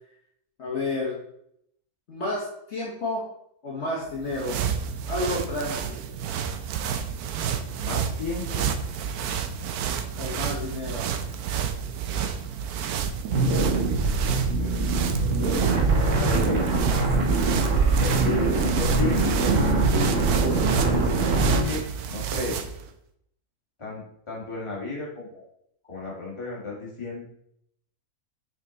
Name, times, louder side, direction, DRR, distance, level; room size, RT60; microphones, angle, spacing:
voice 1, 0.6-1.2 2.1-3.2 3.6-4.6 5.1-6.0 10.2-11.1, left 2 dB, 50° left, -5 dB, 1.4 m, -30 dB
sound 1, 4.1-22.8, right 7 dB, 90° right, 1.1 m, -30 dB
voice 2, 7.8-8.8 13.3-13.6 14.6-14.8 15.4-16.9 18.0-19.8 21.6-22.6 23.8-25.4 25.9-27.2, left 3 dB, 20° left, -5 dB, 2.0 m, -34 dB
sound 2, 13.3-21.6, right 3 dB, 60° right, 1.5 m, -23 dB
6.0 x 4.5 x 3.9 m, 0.74 s
omnidirectional pair, 1.6 m